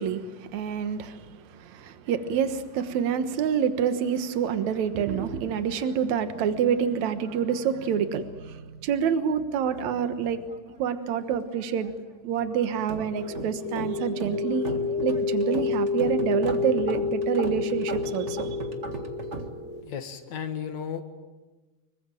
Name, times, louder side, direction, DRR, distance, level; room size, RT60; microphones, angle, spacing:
voice 1, 0.0-10.4 10.8-11.9 12.2-14.7 15.0-18.5, right 7 dB, 75° right, 2.6 m, -27 dB
sound 1, 9.6-11.0 11.2-12.0 12.4-19.5, right 3 dB, 30° right, 1.6 m, -39 dB
sound 2, 13.2-19.8, left 5 dB, 45° left, 2.5 m, -29 dB
voice 2, 19.8-21.0, left 8 dB, 70° left, 3.1 m, -34 dB
26.0 x 23.0 x 9.1 m
omnidirectional pair, 3.3 m